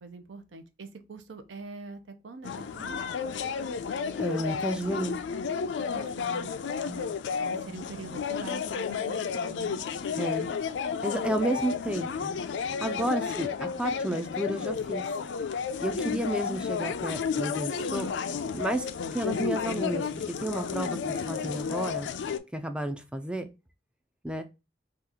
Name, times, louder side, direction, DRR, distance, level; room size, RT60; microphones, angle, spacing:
voice 1, 0.0-3.0 5.8-10.6 11.1-11.3 12.9-13.1 16.0-16.2, right 4 dB, 85° right, 0.6 m, -45 dB
sound 1, 2.4-22.4, left 6 dB, 75° left, 0.4 m, -32 dB
voice 2, 4.2-5.2 10.2-10.5 11.0-15.0 15.8-18.1 18.5-18.9 19.1-22.1 22.5-23.5 24.2-24.4, right 1 dB, 5° right, 0.3 m, -32 dB
2.8 x 2.4 x 3.6 m
head